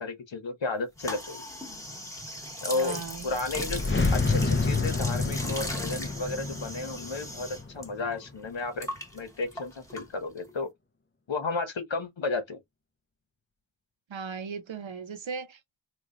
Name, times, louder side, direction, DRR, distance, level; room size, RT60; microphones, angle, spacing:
voice 1, 0.0-1.4 2.6-8.9 9.1-10.7 11.3-12.6, left 3 dB, 70° left, 1.2 m, -33 dB
sound 1, 1.0-7.9 8.1-10.5, left 1 dB, 5° left, 1.3 m, -39 dB
voice 2, 2.7-3.3 14.1-15.8, right 5 dB, 75° right, 0.9 m, -38 dB
sound 2, 3.1-8.3, left 3 dB, 25° left, 0.7 m, -29 dB
3.1 x 2.5 x 3.8 m
wide cardioid pair, 60°, 47 cm